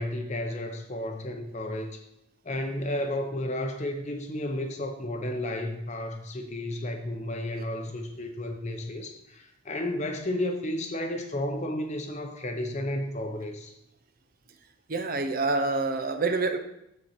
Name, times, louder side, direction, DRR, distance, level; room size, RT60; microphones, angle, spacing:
voice 1, 0.0-2.0 2.4-13.7, left 1 dB, 35° left, 4 dB, 0.7 m, -32 dB
voice 2, 14.9-16.6, right 3 dB, 45° right, 8 dB, 0.7 m, -27 dB
8.4 x 4.4 x 6.5 m, 0.84 s
head